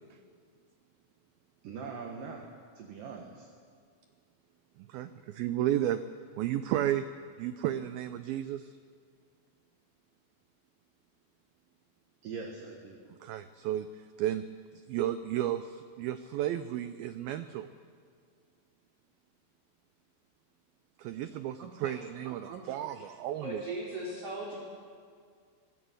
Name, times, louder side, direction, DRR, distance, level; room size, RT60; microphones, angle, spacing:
voice 1, 1.6-2.5 2.8-3.5 12.2-13.0 21.3-21.7 22.2-23.1, right 5 dB, 60° right, 2 dB, 2.8 m, -43 dB
voice 2, 4.8-6.0 6.4-7.1 7.4-8.7 13.2-14.4 14.9-17.7 21.0-23.6, right 12 dB, 85° right, 11 dB, 2.1 m, -33 dB
voice 3, 23.4-24.6, right 1 dB, 35° right, -4 dB, 3.8 m, -38 dB
24.5 x 17.5 x 8.1 m, 2.1 s
omnidirectional pair, 5.1 m